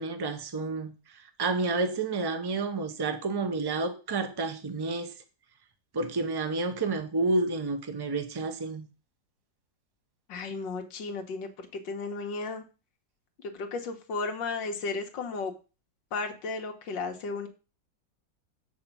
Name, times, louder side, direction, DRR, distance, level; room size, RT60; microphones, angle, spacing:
voice 1, 0.0-5.1 5.9-8.9, right 3 dB, 30° right, 0.4 m, -30 dB
voice 2, 10.3-12.6 13.4-15.5 16.1-17.5, left 4 dB, 90° left, 1.9 m, -34 dB
7.2 x 5.2 x 5.2 m
omnidirectional pair, 1.9 m